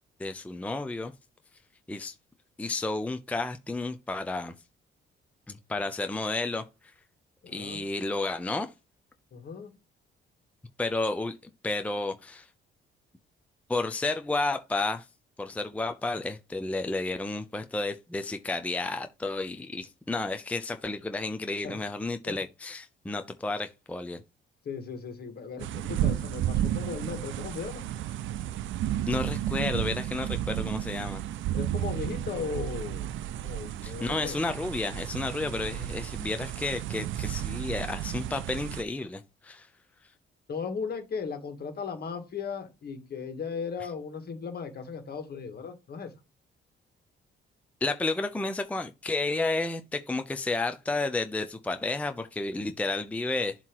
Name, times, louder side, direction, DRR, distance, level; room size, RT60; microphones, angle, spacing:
voice 1, 0.2-1.1 1.9-2.1 2.6-4.5 5.5-6.9 7.5-8.7 10.8-11.4 11.6-12.5 13.7-15.1 15.4-24.2 29.0-31.2 33.8-39.7 47.8-53.6, left 2 dB, 5° left, 0.6 m, -31 dB
voice 2, 7.4-7.8 9.3-9.7 21.6-21.8 22.2-22.4 24.6-27.8 31.5-33.1 33.4-34.4 40.5-46.1, left 5 dB, 55° left, 1.7 m, -37 dB
sound 1, 25.6-38.8, right 12 dB, 75° right, 0.5 m, -32 dB
7.4 x 3.0 x 4.6 m
cardioid pair, 90°, 20 cm